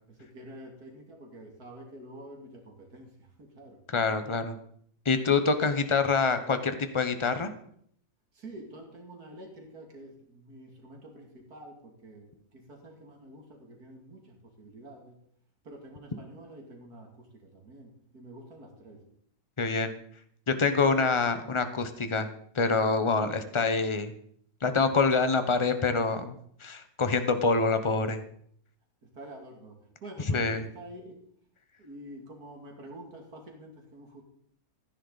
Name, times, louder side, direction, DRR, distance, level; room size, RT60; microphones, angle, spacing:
voice 1, 0.2-3.1 3.4-3.8 8.3-15.2 15.6-19.0 29.2-31.2 31.8-34.2, right 1 dB, 55° right, 1 dB, 2.8 m, -48 dB
voice 2, 3.9-4.6 5.0-7.5 19.6-19.9 20.5-22.3 22.5-24.1 24.6-28.2 30.2-30.7, left 4 dB, 25° left, 9 dB, 0.6 m, -26 dB
15.0 x 10.5 x 4.1 m, 0.65 s
omnidirectional pair, 1.9 m